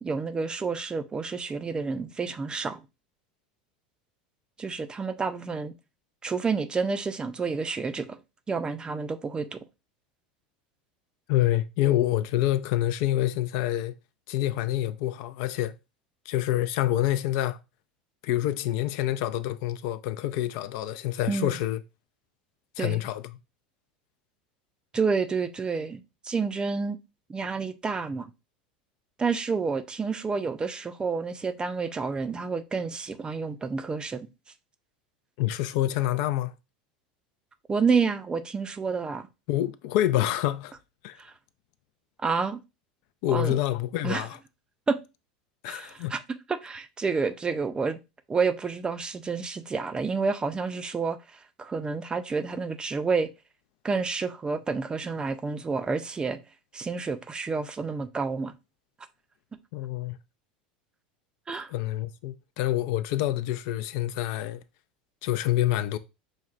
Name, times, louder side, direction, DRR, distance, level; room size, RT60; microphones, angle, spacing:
voice 1, 0.0-2.8 4.6-5.7 6.2-8.2 8.5-9.6 21.3-21.6 22.8-23.0 24.9-27.0 27.3-28.3 29.2-34.3 37.7-39.3 41.2-41.3 42.2-42.6 43.3-43.6 44.0-44.3 44.9-45.0 45.7-46.2 46.5-48.0 48.3-51.2 51.6-53.3 53.8-56.4 56.7-58.5 61.5-61.7, right 4 dB, 20° right, 0.4 m, -29 dB
voice 2, 11.3-13.9 14.3-15.7 16.3-17.6 18.2-21.8 22.8-23.2 35.4-36.5 39.5-40.7 41.0-41.2 43.2-44.4 45.6-46.1 59.7-60.2 61.5-64.6 65.2-66.0, left 14 dB, 60° left, 0.3 m, -27 dB
5.7 x 2.1 x 2.4 m
hypercardioid pair, 90°, 4 cm